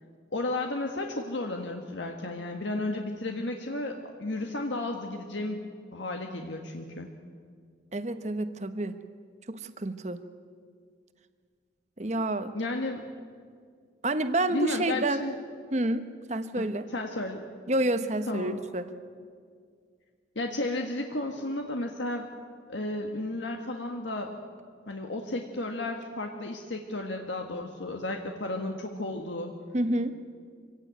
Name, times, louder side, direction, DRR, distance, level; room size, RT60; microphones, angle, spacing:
voice 1, 0.3-7.1 12.5-13.0 14.5-15.4 16.5-17.4 18.3-18.6 20.3-22.3 22.7-24.3 24.9-29.5, left 2 dB, 80° left, 3 dB, 1.6 m, -33 dB
voice 2, 7.9-8.9 9.5-10.2 12.0-12.5 14.0-15.3 15.7-16.0 16.3-16.9 17.7-18.9 29.7-30.1, right 1 dB, 35° right, 10 dB, 1.1 m, -28 dB
25.0 x 17.0 x 9.3 m, 2.1 s
head